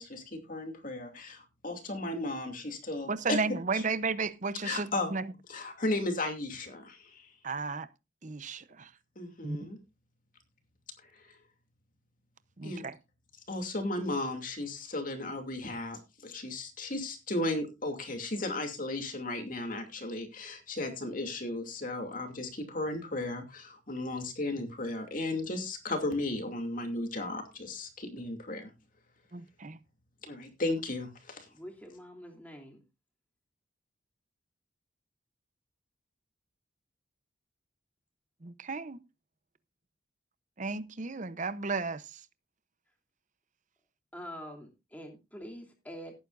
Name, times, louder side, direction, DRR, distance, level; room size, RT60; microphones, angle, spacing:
voice 1, 0.0-3.4 3.7-3.8 4.6-5.1 5.5-7.3 9.2-9.8 11.1-11.4 12.6-12.9 13.5-28.7 30.2-31.5, left 2 dB, 40° left, 2.6 m, -35 dB
voice 2, 3.1-5.3 7.4-7.9 8.2-8.9 9.4-9.6 12.6-12.9 29.3-29.8 38.4-39.0 40.6-42.2, right 4 dB, 40° right, 0.7 m, -34 dB
voice 3, 31.5-32.8 44.1-46.1, equal, 10° left, 3.0 m, -45 dB
18.0 x 9.4 x 2.5 m
head